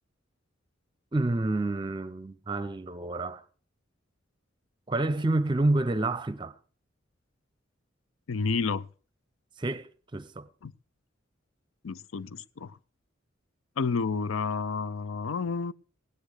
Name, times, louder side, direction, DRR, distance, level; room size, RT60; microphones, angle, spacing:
voice 1, 1.1-3.4 4.9-6.6 9.6-10.5, right 2 dB, 25° right, 0.7 m, -28 dB
voice 2, 8.3-8.9 10.6-10.7 11.8-12.8 13.8-15.7, left 4 dB, 85° left, 0.5 m, -30 dB
17.0 x 10.0 x 4.9 m
head